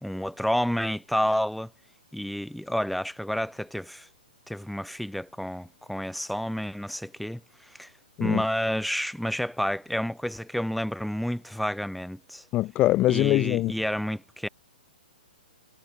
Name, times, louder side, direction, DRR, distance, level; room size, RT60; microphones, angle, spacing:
voice 1, 0.0-1.7 2.1-4.1 4.5-7.4 7.8-7.9 8.2-12.4 13.1-14.5, equal, ahead, 1.2 m, -30 dB
voice 2, 12.5-13.7, left 16 dB, 25° left, 0.8 m, -23 dB
figure-of-eight pair, 120°, 5 cm